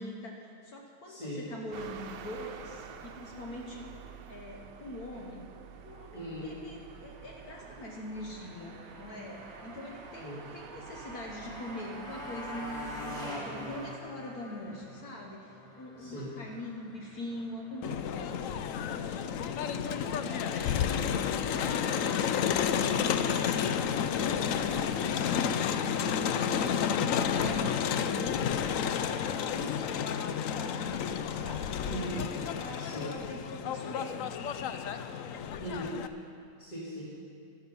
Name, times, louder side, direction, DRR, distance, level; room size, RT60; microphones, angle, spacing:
voice 1, 0.0-3.9 4.3-5.4 5.8-15.5 15.8-21.0 21.5-22.4 22.9-26.0 26.5-28.4 29.1-29.9 30.3-34.2, left 1 dB, 55° left, 0 dB, 1.5 m, -43 dB
voice 2, 1.0-1.5 6.1-6.6 10.2-10.4 16.0-16.3 25.9-26.3 31.8-32.3 32.8-33.1 35.6-36.0 36.6-37.0, equal, 25° left, -9 dB, 2.5 m, -39 dB
sound 1, 1.7-14.0, right 7 dB, 70° right, 1.3 m, -48 dB
Motorcycle, 7.0-19.1, left 1 dB, ahead, 2.6 m, -46 dB
Crowd, 17.8-36.1, left 8 dB, 90° left, 0.7 m, -31 dB
13.0 x 12.0 x 5.5 m, 2.4 s
omnidirectional pair, 2.0 m